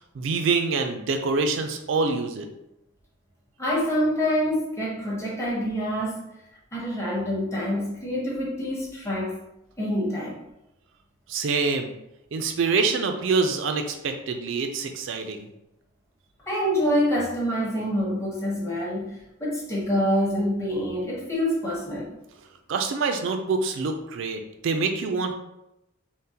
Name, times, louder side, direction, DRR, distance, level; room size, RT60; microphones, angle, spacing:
voice 1, 0.2-2.5 11.3-11.9 12.3-15.5 22.7-25.3, right 4 dB, 65° right, 5 dB, 0.3 m, -25 dB
voice 2, 3.6-6.2 6.7-9.4 9.8-10.4 16.5-22.1, equal, 15° left, -5 dB, 0.8 m, -26 dB
3.6 x 2.0 x 2.7 m, 0.86 s
head